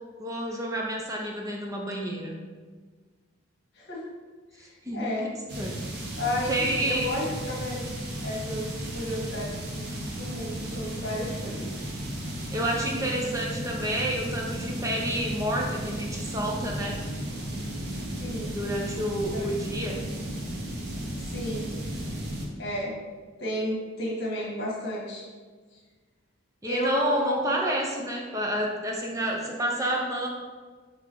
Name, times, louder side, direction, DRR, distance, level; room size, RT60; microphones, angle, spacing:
voice 1, 0.2-2.3 4.6-5.3 5.5-5.8 6.5-7.1 12.5-17.0 18.5-20.0 26.6-30.3, right 1 dB, 15° right, -1 dB, 0.6 m, -29 dB
voice 2, 4.5-5.3 6.2-7.9 8.2-8.7 8.9-11.7 18.2-18.6 19.3-19.5 21.3-21.7 22.6-22.9 23.4-25.3 26.6-27.5, left 1 dB, 50° left, -3 dB, 1.8 m, -32 dB
sound 1, 5.5-22.4, right 1 dB, 50° right, 1.1 m, -34 dB
6.2 x 3.4 x 4.6 m, 1.5 s
head